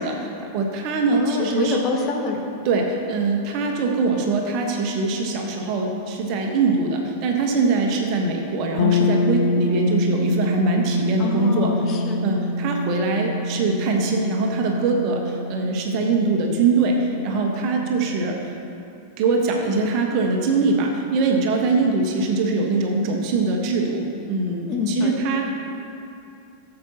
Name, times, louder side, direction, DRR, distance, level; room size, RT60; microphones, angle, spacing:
voice 1, 0.0-1.8 2.6-11.7 12.2-18.5 19.2-24.0 24.3-25.5, right 3 dB, 40° right, 1 dB, 1.4 m, -22 dB
voice 2, 1.1-2.4 11.2-12.2 24.7-25.2, left 4 dB, 30° left, 0 dB, 1.5 m, -25 dB
sound 1, 8.8-18.6, left 2 dB, 55° left, 0.5 m, -26 dB
16.5 x 7.7 x 3.0 m, 2.8 s
figure-of-eight pair, 90°, 0 cm